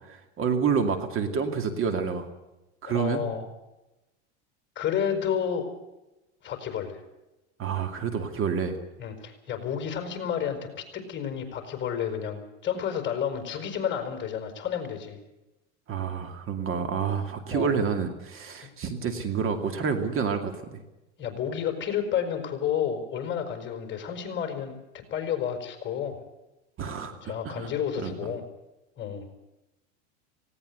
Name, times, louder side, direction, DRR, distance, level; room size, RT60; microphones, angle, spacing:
voice 1, 0.1-2.3 2.8-3.2 7.6-8.8 15.9-20.8 26.8-27.7 28.0-28.1, right 6 dB, 35° right, 6 dB, 2.5 m, -28 dB
voice 2, 2.8-3.5 4.7-5.7 6.4-7.0 9.0-15.2 17.5-17.8 21.2-26.2 27.2-28.4 29.0-29.3, left 8 dB, 30° left, 6 dB, 5.2 m, -31 dB
18.5 x 18.0 x 8.1 m, 0.97 s
supercardioid pair, 120°, 36 cm